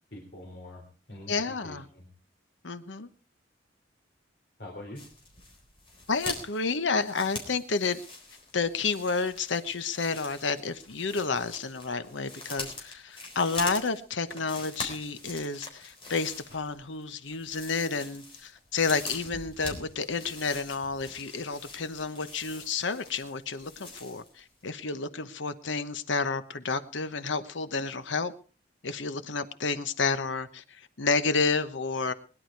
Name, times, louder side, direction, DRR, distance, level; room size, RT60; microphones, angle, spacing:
voice 1, 0.1-0.8 1.1-2.1 4.6-5.0, left 1 dB, 60° left, 0 dB, 3.7 m, -44 dB
voice 2, 1.3-1.9 2.6-3.1 6.1-8.0 8.5-28.3 28.8-32.1, left 4 dB, 75° left, 11 dB, 1.0 m, -30 dB
sound 1, 4.9-24.4 24.7-24.8, left 2 dB, 25° left, 4.0 m, -43 dB
20.5 x 11.0 x 4.6 m, 0.37 s
head